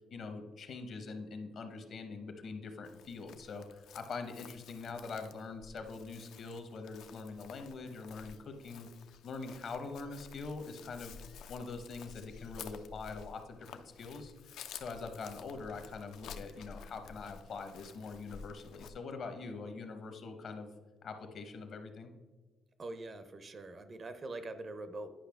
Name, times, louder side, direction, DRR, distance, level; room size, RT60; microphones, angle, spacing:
voice 1, 0.1-8.9 9.2-11.2 11.5-13.7 14.0-20.7 21.0-22.1, left 4 dB, 45° left, 7 dB, 0.8 m, -43 dB
Chirp tweet, 2.8-18.9, left 6 dB, 70° left, 0.5 m, -52 dB
voice 2, 22.8-25.1, right 2 dB, 25° right, 10 dB, 0.5 m, -43 dB
10.0 x 5.5 x 3.5 m, 1.3 s
cardioid pair, 175°, 0 cm